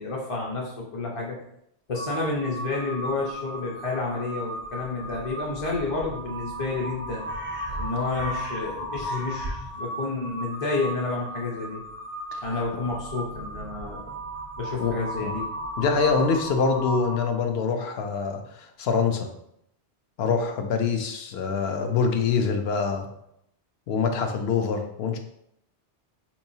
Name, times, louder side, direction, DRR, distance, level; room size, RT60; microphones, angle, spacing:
voice 1, 0.0-1.4 1.9-7.2 7.8-11.8 12.4-14.1 14.6-15.4 15.8-15.9, left 3 dB, 35° left, -3 dB, 0.6 m, -30 dB
Crow, 1.9-17.4, equal, 15° right, 0.4 m, -35 dB
voice 2, 15.8-19.3 20.2-23.1 23.9-25.2, left 5 dB, 70° left, 5 dB, 0.8 m, -25 dB
4.5 x 3.0 x 2.7 m, 0.76 s
omnidirectional pair, 1.2 m